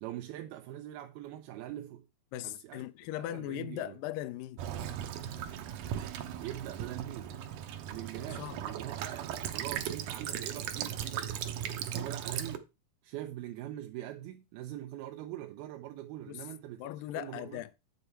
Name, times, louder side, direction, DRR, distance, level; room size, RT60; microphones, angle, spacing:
voice 1, 0.0-2.1 2.4-2.9 3.2-4.0 6.4-7.3 7.9-11.3 11.8-12.6 13.0-17.6, right 13 dB, 85° right, 2.6 m, -43 dB
voice 2, 2.3-4.6 8.3-8.6 16.3-16.4 16.8-17.8, left 13 dB, 80° left, 2.1 m, -39 dB
Child speech kid speaking / Bird vocalization bird call bird song / Stream, 4.6-12.6, right 9 dB, 70° right, 2.1 m, -38 dB
8.0 x 6.9 x 4.4 m
omnidirectional pair, 4.3 m